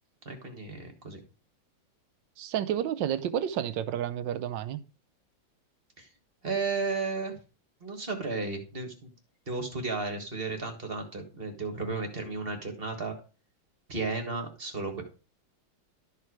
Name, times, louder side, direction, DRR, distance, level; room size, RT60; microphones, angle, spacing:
voice 1, 0.2-1.2 6.0-6.1 6.4-7.4 7.8-9.1 9.5-13.1 13.9-15.0, right 3 dB, 30° right, 1.7 m, -33 dB
voice 2, 2.4-4.8, right 10 dB, 75° right, 1.4 m, -30 dB
12.5 x 4.6 x 4.7 m
omnidirectional pair, 2.1 m